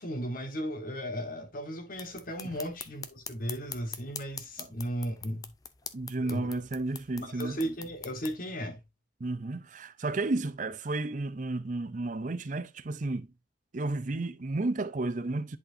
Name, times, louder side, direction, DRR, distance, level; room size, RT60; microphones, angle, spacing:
voice 1, 0.0-5.5 6.1-6.6 7.2-8.8, equal, 50° left, 1.3 m, -36 dB
sound 1, 1.9-8.4, left 6 dB, 20° left, 0.5 m, -44 dB
voice 2, 5.9-7.6 9.2-13.3 13.7-15.6, right 2 dB, 45° right, 0.6 m, -32 dB
10.5 x 4.3 x 2.6 m
head